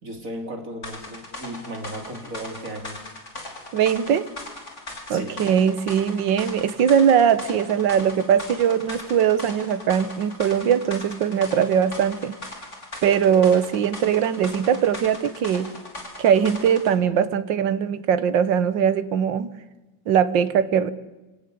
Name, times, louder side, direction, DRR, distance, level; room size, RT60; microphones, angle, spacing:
voice 1, 0.0-3.0 5.1-5.3, right 1 dB, 45° right, 4 dB, 3.5 m, -35 dB
sound 1, 0.8-16.9, left 2 dB, 35° left, 4.1 m, -39 dB
voice 2, 3.7-4.3 5.1-12.3 13.0-15.7 16.2-19.5 20.1-20.9, right 8 dB, 75° right, 13 dB, 1.8 m, -20 dB
28.0 x 17.5 x 8.5 m, 1.1 s
omnidirectional pair, 2.1 m